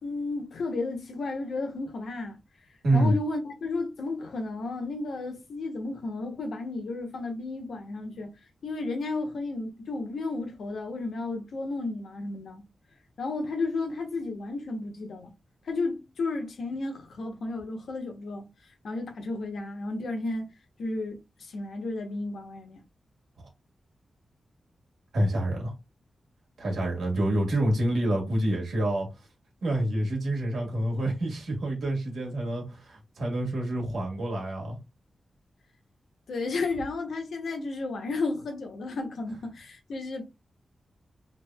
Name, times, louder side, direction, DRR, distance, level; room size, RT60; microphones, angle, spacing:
voice 1, 0.0-2.4 2.9-8.3 8.6-12.6 13.2-15.3 15.7-18.5 18.8-20.5 20.8-22.8 36.3-40.2, left 3 dB, 80° left, 0.8 m, -33 dB
voice 2, 2.8-3.1 25.1-25.7 26.6-29.1 29.6-34.8, right 1 dB, 90° right, 1.4 m, -27 dB
3.0 x 2.7 x 2.2 m
wide cardioid pair, 145°, 0 cm